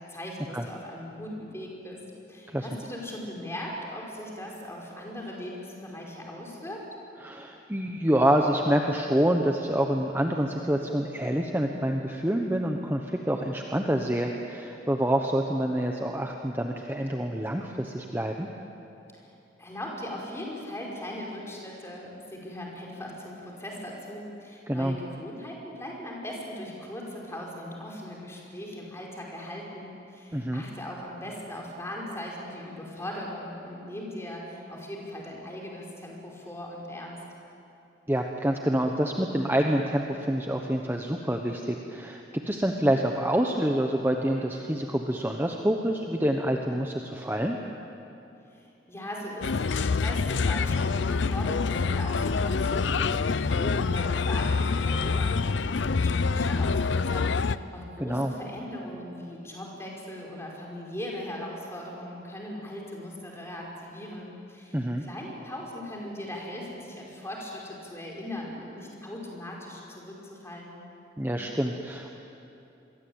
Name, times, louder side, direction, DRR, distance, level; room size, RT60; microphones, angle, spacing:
voice 1, 0.1-2.0 2.3-6.8 19.1-37.2 48.5-70.8, left 1 dB, 15° left, -2 dB, 5.2 m, -39 dB
voice 2, 7.2-18.5 24.7-25.0 30.3-30.6 38.1-47.6 58.0-58.3 64.7-65.0 71.2-72.2, right 1 dB, 10° right, 2 dB, 1.1 m, -27 dB
Bird, 49.4-57.6, left 4 dB, 75° left, 0.6 m, -26 dB
27.0 x 22.5 x 8.9 m, 2.8 s
head